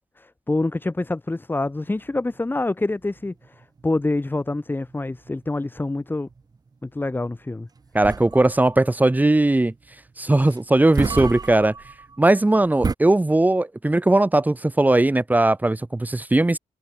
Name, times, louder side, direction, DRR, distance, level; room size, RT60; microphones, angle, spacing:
voice 1, 0.2-3.3 3.8-6.3 6.8-7.7, left 2 dB, 15° left, 7.9 m, -26 dB
sound 1, 1.6-13.0, right 4 dB, 30° right, 3.8 m, -34 dB
voice 2, 7.9-9.7 10.2-11.7 12.2-16.6, right 2 dB, 15° right, 5.5 m, -19 dB
wide cardioid pair, 135°, 13 cm